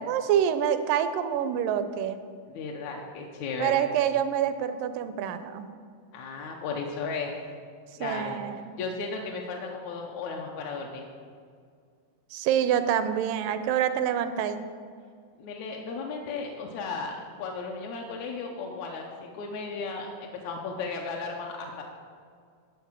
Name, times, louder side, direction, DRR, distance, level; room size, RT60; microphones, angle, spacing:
voice 1, 0.0-2.2 3.6-5.7 8.0-8.6 12.3-14.7, right 9 dB, 80° right, 10 dB, 2.1 m, -26 dB
voice 2, 2.5-3.9 6.1-7.3 8.0-8.4 8.7-11.0 15.4-17.1 17.4-21.8, left 4 dB, 75° left, 0 dB, 1.8 m, -35 dB
11.5 x 4.8 x 7.4 m, 2.1 s
omnidirectional pair, 4.0 m